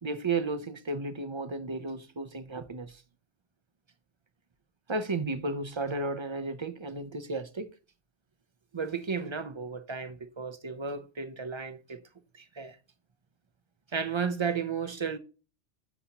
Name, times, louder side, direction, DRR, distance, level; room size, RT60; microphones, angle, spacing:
voice 1, 0.0-3.0 4.9-7.7 8.7-12.0 12.4-12.8 13.9-15.2, right 4 dB, 35° right, 0.5 m, -33 dB
11.0 x 7.0 x 2.8 m
omnidirectional pair, 1.2 m